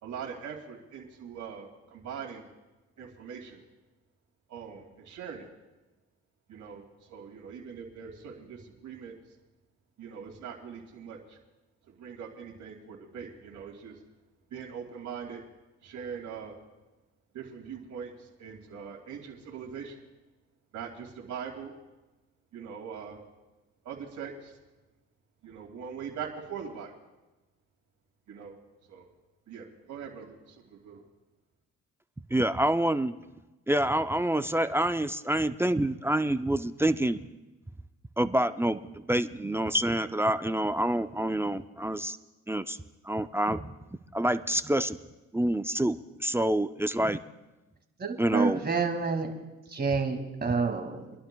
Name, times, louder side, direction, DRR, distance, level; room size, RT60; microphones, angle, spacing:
voice 1, 0.0-2.5 3.0-3.6 4.5-5.5 6.5-9.2 10.0-11.4 11.9-14.0 14.5-15.4 15.8-16.6 17.3-20.0 20.7-21.7 22.5-23.3 23.8-24.6 25.4-26.9 28.3-28.6 28.9-29.1 29.5-31.0, right 7 dB, 70° right, -1 dB, 2.4 m, -42 dB
voice 2, 32.3-33.2 33.7-37.2 38.2-38.8 39.1-42.2 42.5-42.8 43.0-43.7 44.1-45.0 45.3-47.2 48.2-48.6, right 1 dB, 10° right, 10 dB, 0.4 m, -27 dB
voice 3, 48.0-49.3 49.7-51.1, right 4 dB, 30° right, 3 dB, 2.2 m, -28 dB
27.0 x 11.5 x 2.3 m, 1.1 s
cardioid pair, 90°, 30 cm